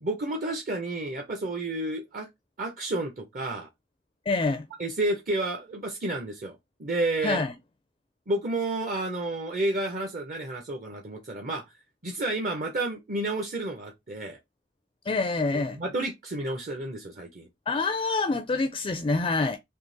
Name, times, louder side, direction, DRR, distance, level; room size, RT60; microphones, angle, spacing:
voice 1, 0.0-2.3 2.6-3.7 4.8-7.4 8.3-11.6 12.0-14.4 15.5-17.5, right 2 dB, 45° right, 0.7 m, -31 dB
voice 2, 4.3-4.7 7.2-7.5 15.1-15.8 17.7-19.6, left 3 dB, 30° left, 0.4 m, -26 dB
3.7 x 2.8 x 3.8 m
head